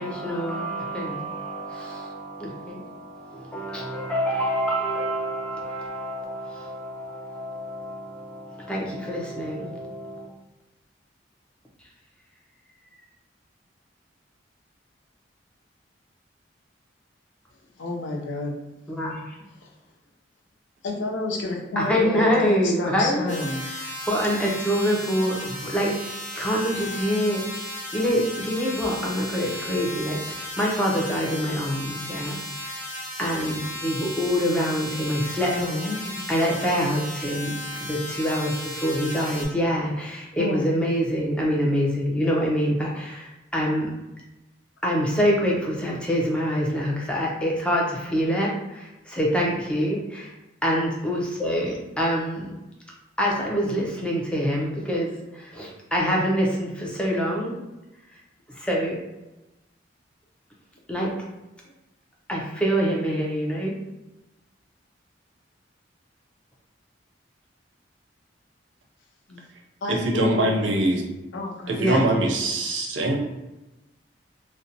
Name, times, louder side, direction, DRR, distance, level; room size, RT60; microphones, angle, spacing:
voice 1, 0.0-10.3 18.9-19.4 21.8-27.6 27.9-32.8 33.2-35.5 36.3-43.9 44.8-50.3 50.6-52.5 53.2-57.5 58.6-59.0 60.9-61.1 62.3-63.7 71.8-72.0, equal, 5° left, -3 dB, 0.5 m, -26 dB
voice 2, 17.8-18.7 19.6-19.7 20.8-23.7 35.5-36.2 40.4-40.6 69.3-69.4 69.8-70.5 71.3-71.7, left 2 dB, 85° left, 1 dB, 0.5 m, -30 dB
sound 1, 23.3-39.5, left 1 dB, 45° left, 0.8 m, -35 dB
voice 3, 69.9-71.1 71.7-73.2, right 1 dB, 80° right, 1 dB, 0.5 m, -23 dB
2.6 x 2.1 x 2.6 m, 1.0 s
head